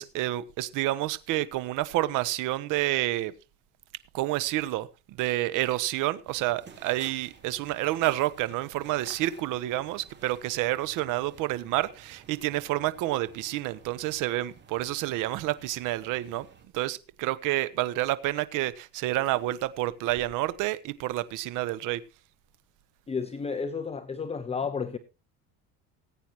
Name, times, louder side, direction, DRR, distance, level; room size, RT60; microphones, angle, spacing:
voice 1, 0.0-3.3 4.1-16.5 16.7-22.0, right 16 dB, 70° right, 1.1 m, -29 dB
sound 1, 6.3-16.7, right 6 dB, 35° right, 3.3 m, -53 dB
voice 2, 23.1-25.0, left 5 dB, 20° left, 0.9 m, -32 dB
19.5 x 9.0 x 3.1 m
cardioid pair, 125°, 33 cm